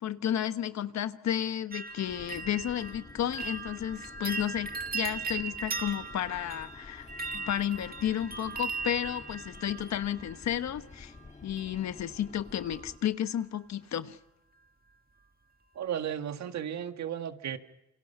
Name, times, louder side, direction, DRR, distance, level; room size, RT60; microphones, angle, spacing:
voice 1, 0.0-7.1 7.3-11.1 11.4-14.2, left 10 dB, 65° left, 1.2 m, -32 dB
sound 1, 1.7-10.6 11.6-12.1 12.4-12.9 13.2-13.3, right 4 dB, 30° right, 1.9 m, -39 dB
sound 2, 2.1-13.0, left 3 dB, 25° left, 1.5 m, -50 dB
voice 2, 15.8-17.6, right 9 dB, 65° right, 1.8 m, -34 dB
28.5 x 25.5 x 5.6 m
cardioid pair, 90°, 30 cm